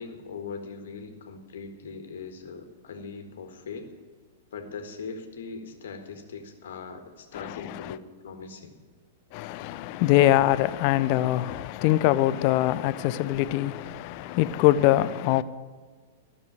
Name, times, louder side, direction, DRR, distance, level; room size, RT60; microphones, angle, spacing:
voice 1, 0.0-3.9 4.5-8.8, left 5 dB, 60° left, 1.6 m, -40 dB
voice 2, 7.3-8.0 9.3-15.4, left 14 dB, 40° left, 0.5 m, -23 dB
13.5 x 6.8 x 8.9 m
figure-of-eight pair, 100°, 0 cm